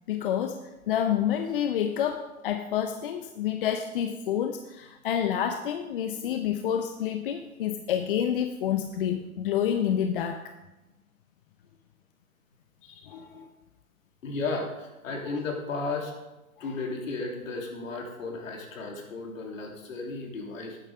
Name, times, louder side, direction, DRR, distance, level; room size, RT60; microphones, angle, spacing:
voice 1, 0.1-10.5 12.8-13.5 15.3-15.4 16.6-16.8, left 9 dB, 40° left, 7 dB, 0.7 m, -29 dB
voice 2, 14.2-16.1 16.6-20.8, left 3 dB, 65° left, 1 dB, 3.2 m, -34 dB
12.5 x 9.0 x 4.9 m, 1.0 s
hypercardioid pair, 130°, 43 cm